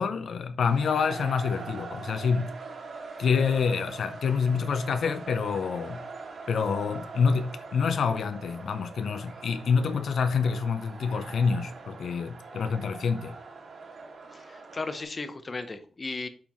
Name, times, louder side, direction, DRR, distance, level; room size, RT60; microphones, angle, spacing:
voice 1, 0.0-2.5 3.2-6.1 6.5-13.4, left 5 dB, 70° left, 0.6 m, -27 dB
sound 1, 0.7-15.0, right 4 dB, 70° right, 3.5 m, -42 dB
voice 2, 14.3-16.3, left 3 dB, 30° left, 0.7 m, -36 dB
8.5 x 5.7 x 3.1 m
wide cardioid pair, 170°, 0 cm